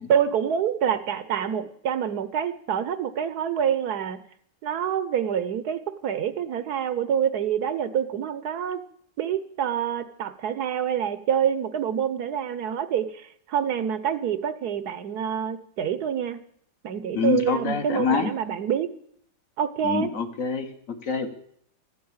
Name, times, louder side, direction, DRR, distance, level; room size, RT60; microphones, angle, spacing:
voice 1, 0.1-4.2 4.6-8.8 9.2-16.4 16.8-18.9 19.6-20.1, right 8 dB, 70° right, 14 dB, 1.3 m, -26 dB
voice 2, 17.1-18.3 19.8-20.7 21.0-21.3, left 5 dB, 50° left, 6 dB, 1.6 m, -25 dB
13.5 x 9.5 x 8.7 m, 0.65 s
omnidirectional pair, 1.9 m